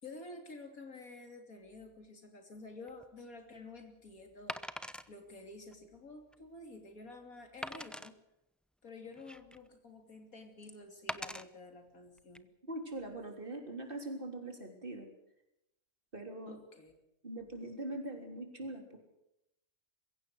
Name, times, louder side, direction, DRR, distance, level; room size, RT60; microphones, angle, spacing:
voice 1, 0.0-8.2 8.8-12.5 16.5-16.9, left 2 dB, 85° left, 5 dB, 3.4 m, -50 dB
Wood, 2.9-3.0 4.5-5.1 5.7-5.8 6.3-6.4 7.6-8.1 8.9-9.7 11.1-11.4 12.2-12.4, equal, ahead, 0.4 m, -42 dB
voice 2, 12.7-15.1 16.1-16.6 17.2-19.0, right 1 dB, 40° right, 4 dB, 3.7 m, -42 dB
22.5 x 16.5 x 8.0 m, 0.85 s
omnidirectional pair, 1.4 m